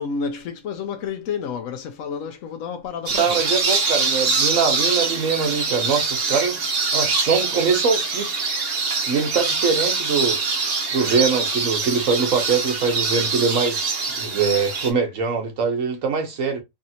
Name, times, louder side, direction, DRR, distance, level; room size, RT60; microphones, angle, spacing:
voice 1, 0.0-3.4, left 6 dB, 70° left, 0.9 m, -30 dB
sound 1, 3.1-14.9, right 4 dB, 50° right, 1.0 m, -24 dB
voice 2, 3.2-6.6 6.9-8.3 9.1-10.4 10.9-16.6, right 5 dB, 70° right, 1.2 m, -23 dB
3.3 x 2.7 x 2.6 m
omnidirectional pair, 1.4 m